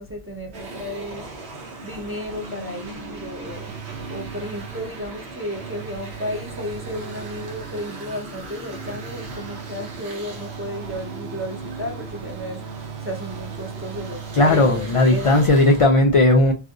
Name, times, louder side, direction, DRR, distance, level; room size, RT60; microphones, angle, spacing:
voice 1, 0.0-1.3 1.8-3.8 4.1-15.5, left 1 dB, 20° right, 0.4 m, -33 dB
sound 1, 0.5-15.9, right 2 dB, 90° right, 1.0 m, -38 dB
sound 2, 3.4-5.1 5.6-8.1 8.7-15.1, right 8 dB, 65° right, 0.8 m, -38 dB
voice 2, 14.3-16.5, left 2 dB, 60° left, 0.3 m, -16 dB
2.5 x 2.4 x 3.6 m
omnidirectional pair, 1.0 m